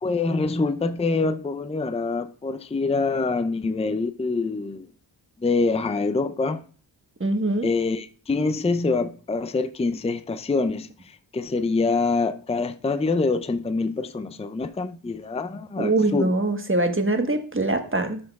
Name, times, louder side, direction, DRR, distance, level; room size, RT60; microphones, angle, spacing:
voice 1, 0.0-4.9 5.4-6.6 7.6-16.3, left 3 dB, 15° left, 0.5 m, -25 dB
voice 2, 7.2-7.7 15.8-18.2, right 2 dB, 25° right, 1.3 m, -23 dB
12.5 x 6.4 x 2.3 m
cardioid pair, 45°, 47 cm